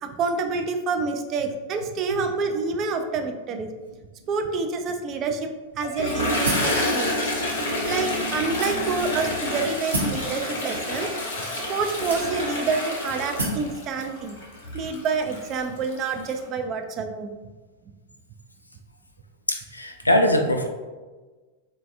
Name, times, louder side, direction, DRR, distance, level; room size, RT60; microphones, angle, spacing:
voice 1, 0.0-3.7 4.3-5.5 5.7-7.2 7.9-11.1 11.7-14.4 14.7-17.3, right 4 dB, 35° right, 5 dB, 0.3 m, -27 dB
Toilet flush, 5.8-16.4, left 1 dB, 60° left, 0.7 m, -28 dB
sound 1, 6.4-6.8 7.6-7.7 8.6-9.1 9.9-10.2 11.2-11.3 12.1-12.6 13.4-13.7, right 1 dB, 75° right, 0.7 m, -28 dB
voice 2, 19.5-20.7, left 1 dB, 85° left, 4 dB, 0.3 m, -21 dB
3.9 x 2.2 x 2.5 m, 1.3 s
figure-of-eight pair, 90°, 0 cm